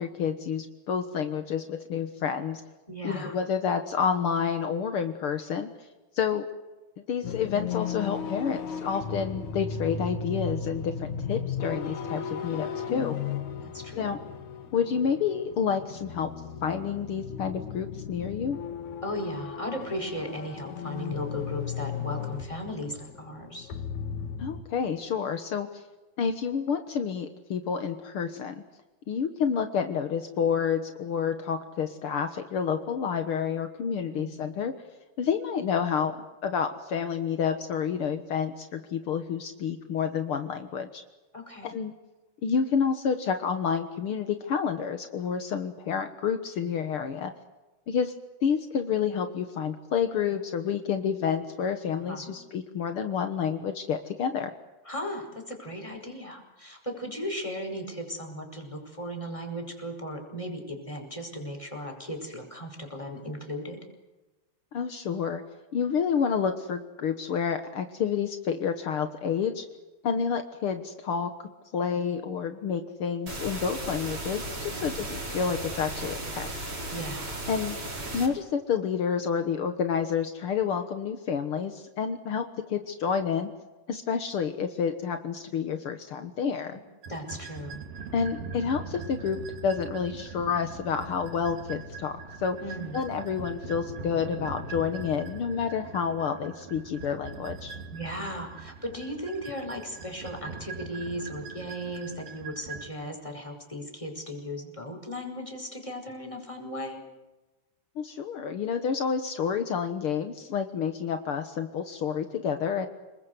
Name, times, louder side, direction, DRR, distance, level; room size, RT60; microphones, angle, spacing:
voice 1, 0.0-2.6 3.0-5.7 6.1-6.4 7.1-13.2 13.9-14.2 14.7-16.3 16.6-18.6 24.4-25.8 26.2-28.5 29.1-34.7 35.2-36.2 36.4-41.0 41.6-41.9 42.4-47.3 47.9-48.1 48.4-54.5 64.7-65.4 65.7-69.6 70.0-71.3 71.7-76.7 77.5-77.8 78.1-83.5 83.9-86.8 88.1-92.6 92.9-97.8 107.9-112.9, left 7 dB, 80° left, 8 dB, 1.2 m, -29 dB
voice 2, 2.9-3.4 13.6-14.2 19.0-23.7 34.0-34.5 41.3-41.7 51.9-52.3 54.8-63.8 74.6-75.0 76.9-77.4 87.1-87.8 92.6-93.0 97.9-107.0, equal, 10° left, 2 dB, 5.0 m, -37 dB
sound 1, 7.2-24.6, left 6 dB, 55° left, 2.6 m, -36 dB
sound 2, 73.3-78.3, right 1 dB, 30° right, 5.3 m, -36 dB
sound 3, 87.0-102.9, right 4 dB, 65° right, 3.6 m, -41 dB
30.0 x 20.5 x 8.1 m, 1.1 s
omnidirectional pair, 4.5 m